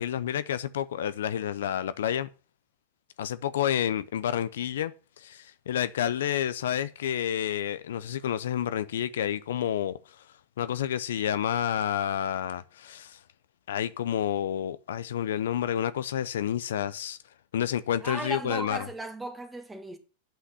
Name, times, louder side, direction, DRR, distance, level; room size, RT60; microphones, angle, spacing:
voice 1, 0.0-2.3 3.2-10.2 10.6-13.2 13.7-17.2 17.5-18.9, left 10 dB, 80° left, 0.6 m, -29 dB
voice 2, 18.0-20.0, right 1 dB, 10° right, 1.7 m, -36 dB
8.7 x 5.8 x 6.9 m
hypercardioid pair, 110°, 0 cm